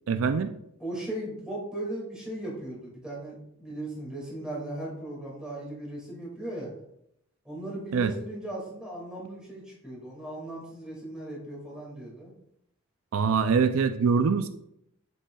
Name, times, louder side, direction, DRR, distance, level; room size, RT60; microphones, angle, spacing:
voice 1, 0.1-0.5 7.9-8.1 13.1-14.5, right 5 dB, 75° right, 10 dB, 0.4 m, -24 dB
voice 2, 0.8-6.7 7.4-12.3, right 1 dB, 5° right, -5 dB, 2.2 m, -37 dB
7.2 x 7.1 x 2.3 m, 0.77 s
head